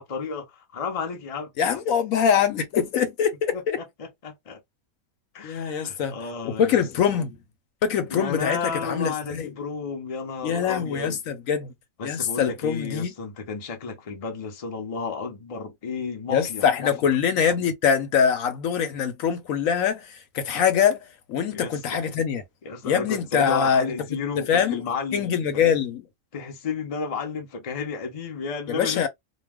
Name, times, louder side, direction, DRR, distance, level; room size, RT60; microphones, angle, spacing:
voice 1, 0.0-1.7 2.2-2.3 3.5-4.6 5.3-6.8 8.1-11.2 12.0-16.9 21.5-22.0 22.6-25.8 26.3-29.1, left 5 dB, 40° left, 0.5 m, -32 dB
voice 2, 1.6-3.8 5.4-6.2 6.6-7.4 7.8-9.5 10.4-11.7 12.0-13.1 16.3-22.4 22.8-23.9 24.5-24.8 25.1-26.0 28.7-29.1, left 7 dB, 70° left, 1.0 m, -23 dB
2.3 x 2.3 x 3.3 m
omnidirectional pair, 1.5 m